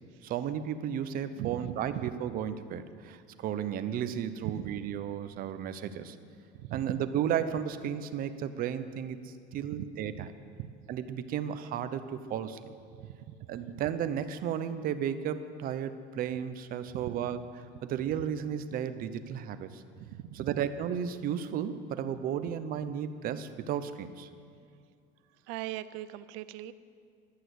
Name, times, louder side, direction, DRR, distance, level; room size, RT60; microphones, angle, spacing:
voice 1, 0.2-6.2 6.7-10.3 10.9-12.6 13.5-17.4 17.8-19.8 20.3-24.3, right 9 dB, 45° right, 11 dB, 0.9 m, -34 dB
voice 2, 1.4-1.7 4.4-4.7 6.7-6.9 9.7-9.8 10.2-10.3 10.6-10.7 13.1-13.3 16.9-17.2 20.0-20.5 25.5-26.7, right 15 dB, 70° right, 14 dB, 0.7 m, -39 dB
14.5 x 11.5 x 8.0 m, 2.2 s
cardioid pair, 160°, 21 cm